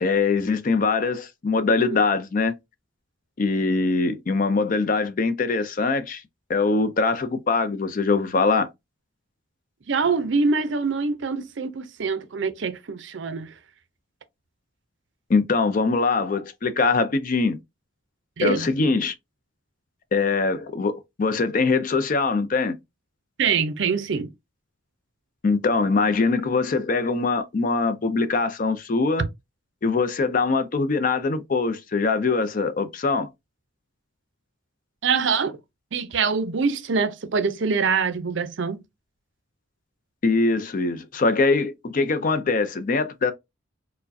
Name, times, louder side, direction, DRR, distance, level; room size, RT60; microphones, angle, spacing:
voice 1, 0.0-2.5 3.4-6.2 6.5-8.7 15.3-17.6 18.4-19.1 20.1-22.8 25.4-29.3 29.8-33.3 40.2-43.3, left 4 dB, 40° left, 0.4 m, -22 dB
voice 2, 9.9-13.5 18.4-18.7 23.4-24.3 35.0-35.6 35.9-38.8, right 5 dB, 65° right, 0.5 m, -24 dB
4.5 x 2.1 x 2.6 m
head